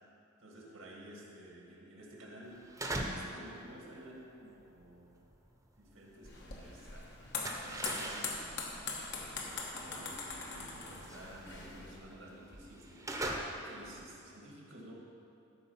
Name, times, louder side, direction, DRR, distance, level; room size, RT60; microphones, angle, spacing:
voice 1, 0.4-2.7 3.1-5.1 5.8-8.5 9.1-13.1 13.5-14.9, right 1 dB, 85° right, -2 dB, 2.1 m, -52 dB
sound 1, 2.5-3.4 3.7-6.6 6.9-14.1, right 1 dB, 15° right, 0.8 m, -42 dB
sound 2, 6.2-12.0, left 4 dB, 60° left, 1.2 m, -42 dB
13.0 x 4.9 x 5.6 m, 2.7 s
head